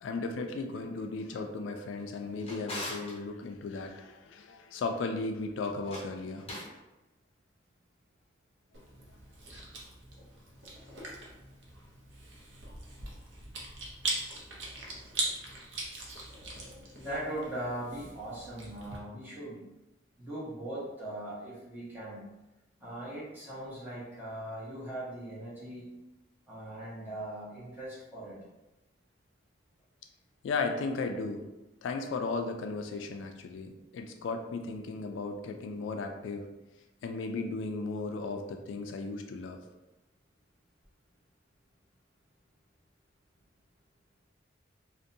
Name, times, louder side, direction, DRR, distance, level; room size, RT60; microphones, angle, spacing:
voice 1, 0.0-6.5 30.4-31.5 31.8-36.5 37.0-39.6, left 3 dB, 90° left, 5 dB, 0.3 m, -35 dB
Drawer open or close, 2.0-3.2 5.7-6.8, left 1 dB, 35° left, 0.6 m, -42 dB
Chewing mastication, 8.7-19.0, right 2 dB, 75° right, 0.6 m, -41 dB
voice 2, 17.0-19.6 20.2-22.3 22.8-25.9 26.5-28.4, right 1 dB, 10° right, -9 dB, 1.0 m, -40 dB
2.6 x 2.1 x 2.6 m, 1.0 s
head